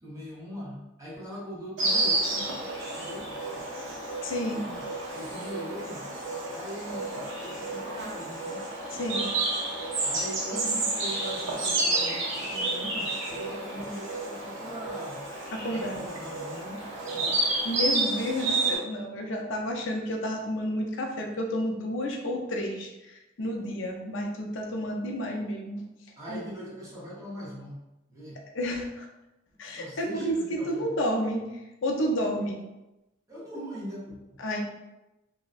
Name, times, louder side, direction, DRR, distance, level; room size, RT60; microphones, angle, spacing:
voice 1, 0.0-2.4 3.0-3.3 4.5-4.8 5.1-6.0 6.5-8.7 10.0-15.2 15.7-16.8 17.1-17.4 26.2-27.8 28.1-28.4 29.5-30.9 33.3-34.2, equal, 15° right, -7 dB, 0.7 m, -41 dB
Insect, 1.8-18.8, right 2 dB, 65° right, 0.5 m, -30 dB
voice 2, 4.2-4.6 8.9-9.3 15.5-16.0 17.6-25.8 26.3-26.4 28.5-29.1 29.6-32.6 34.4-34.6, equal, 65° left, 1 dB, 0.4 m, -31 dB
2.6 x 2.1 x 2.3 m, 0.97 s
head